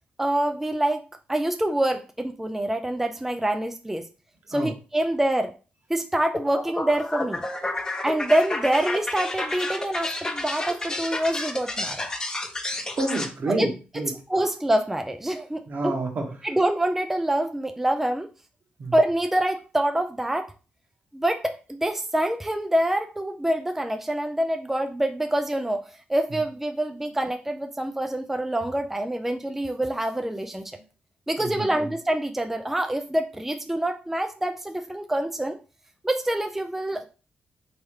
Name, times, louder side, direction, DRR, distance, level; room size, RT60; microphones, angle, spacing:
voice 1, 0.2-1.0 1.3-4.1 4.5-5.5 5.9-7.4 8.0-12.1 13.6-13.7 14.3-15.9 16.4-18.3 18.9-20.5 21.1-30.8 31.3-35.6 36.0-37.0, right 1 dB, 10° right, 6 dB, 0.3 m, -26 dB
sound 1, 6.3-13.3, left 2 dB, 20° left, 0.7 m, -31 dB
voice 2, 12.7-14.1 15.7-16.5 18.8-18.9 31.4-31.9, right 2 dB, 55° right, 2 dB, 1.2 m, -29 dB
3.5 x 3.1 x 3.1 m, 0.34 s
cardioid pair, 80°, 4 cm